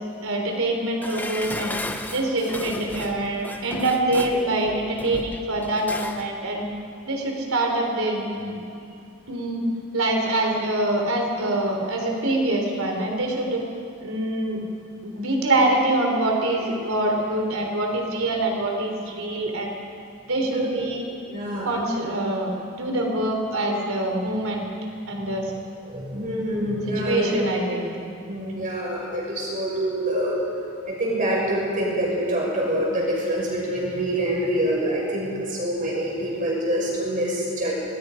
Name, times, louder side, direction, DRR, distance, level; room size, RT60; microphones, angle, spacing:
voice 1, 0.2-1.8 2.1-6.7 7.1-8.5 9.3-9.6 9.9-13.6 14.0-14.6 15.0-19.8 20.3-21.0 21.6-22.5 22.8-24.7 25.1-25.5 26.9-27.9, right 1 dB, 75° right, 1 dB, 3.7 m, -25 dB
Dishes pots and pans, 1.0-6.3 6.6-6.7, left 1 dB, 10° left, 0.8 m, -35 dB
voice 2, 21.3-21.8 25.8-27.4 28.3-30.4 30.9-37.7, right 1 dB, 35° right, -4 dB, 6.4 m, -26 dB
26.5 x 20.5 x 5.2 m, 2.5 s
head